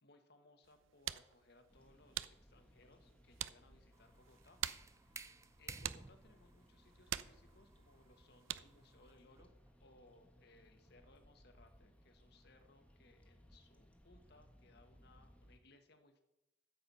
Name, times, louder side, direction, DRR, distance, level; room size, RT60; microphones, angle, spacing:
voice 1, 0.0-4.6 5.0-5.2 5.6-9.5 9.8-16.2, left 2 dB, 55° left, 6 dB, 1.6 m, -66 dB
sound 1, 0.6-8.9, right 12 dB, 90° right, 0.5 m, -48 dB
sound 2, 1.7-15.6, equal, 5° left, 1.5 m, -66 dB
sound 3, 3.9-9.7, right 4 dB, 15° right, 0.5 m, -54 dB
13.0 x 8.0 x 5.6 m, 0.89 s
head